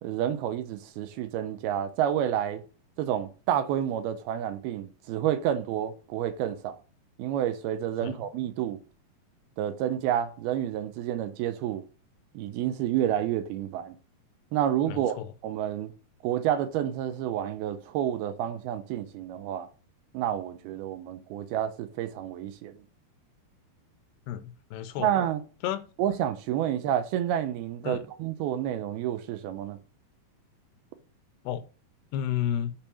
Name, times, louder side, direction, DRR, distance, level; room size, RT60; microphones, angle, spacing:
voice 1, 0.0-2.6 3.0-6.8 7.2-8.8 9.6-11.8 12.3-14.0 14.5-15.2 15.4-15.9 16.2-19.7 20.1-22.7 25.0-25.4 26.0-29.8, right 10 dB, 75° right, 2.5 m, -29 dB
voice 2, 14.9-15.3 24.3-25.1 25.6-25.8 27.8-28.0 31.4-31.6 32.1-32.7, left 10 dB, 80° left, 2.8 m, -31 dB
8.8 x 5.2 x 6.9 m
omnidirectional pair, 4.8 m